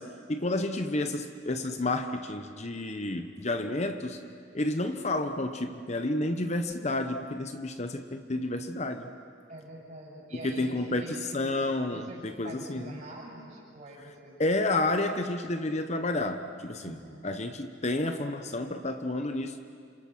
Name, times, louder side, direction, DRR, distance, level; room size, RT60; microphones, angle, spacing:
voice 1, 0.0-4.2 4.5-9.1 10.4-12.9 14.4-19.6, left 2 dB, 35° left, 8 dB, 0.9 m, -30 dB
voice 2, 9.5-14.4 16.8-17.3, right 1 dB, 40° right, -4 dB, 7.3 m, -45 dB
29.5 x 27.0 x 6.2 m, 2.3 s
head